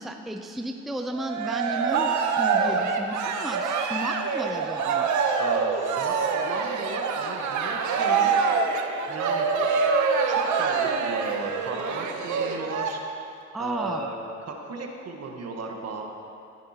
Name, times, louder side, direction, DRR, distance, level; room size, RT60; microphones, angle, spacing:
voice 1, 0.0-5.1 13.5-14.1, right 1 dB, ahead, 4 dB, 0.5 m, -33 dB
Cheering, 1.1-12.9, right 5 dB, 70° right, 0.8 m, -25 dB
voice 2, 5.4-8.4 9.1-9.5 10.2-13.0 13.6-14.2 14.4-16.0, right 3 dB, 55° right, 2 dB, 1.3 m, -35 dB
14.0 x 9.0 x 2.9 m, 2.6 s
cardioid pair, 90°, 30 cm